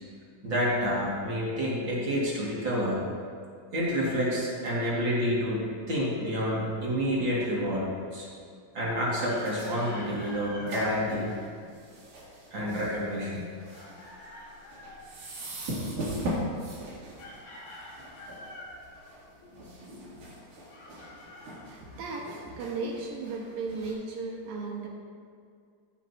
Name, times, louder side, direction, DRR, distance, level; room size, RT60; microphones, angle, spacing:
voice 1, 0.4-3.0 3.7-7.8 8.1-8.3 8.7-11.3 12.5-13.4 19.8-20.2, equal, 40° right, -6 dB, 2.2 m, -29 dB
Chicken rooster, 9.2-10.8 13.7-15.1 17.2-18.8 20.7-22.3, left 1 dB, 80° left, 3.8 m, -46 dB
sound 1, 9.2-23.9, equal, 60° right, 3.9 m, -40 dB
voice 2, 21.7-22.3 22.6-24.9, right 4 dB, 80° right, -2 dB, 3.1 m, -35 dB
16.0 x 7.5 x 2.8 m, 2.2 s
omnidirectional pair, 4.1 m